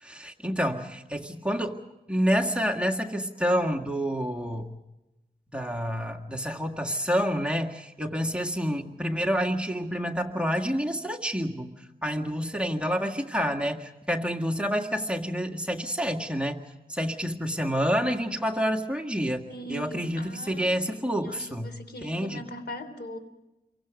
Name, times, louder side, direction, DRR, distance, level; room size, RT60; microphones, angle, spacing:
voice 1, 0.0-1.8 2.1-4.7 5.5-11.7 12.0-16.6 16.9-21.7 22.0-22.4, equal, 5° right, 2 dB, 1.9 m, -28 dB
voice 2, 19.5-20.8 21.2-23.2, left 1 dB, 75° left, 8 dB, 3.5 m, -40 dB
29.0 x 23.5 x 5.1 m, 1.0 s
wide cardioid pair, 85°, 17 cm